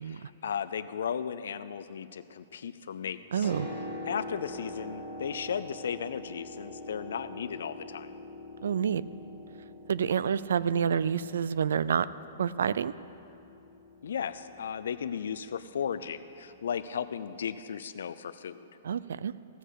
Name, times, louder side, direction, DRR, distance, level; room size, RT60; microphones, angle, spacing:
voice 1, 0.1-3.5 4.1-8.1 14.0-18.7, left 7 dB, 80° left, 11 dB, 0.5 m, -35 dB
Piano, 3.2-16.9 18.0-18.1, left 1 dB, 15° right, 2.5 m, -45 dB
voice 2, 3.3-3.7 8.6-9.0 9.9-12.1 12.4-12.9 18.8-19.3, right 7 dB, 80° right, 18 dB, 0.4 m, -28 dB
15.5 x 7.8 x 6.4 m, 2.7 s
hypercardioid pair, 175°, 0 cm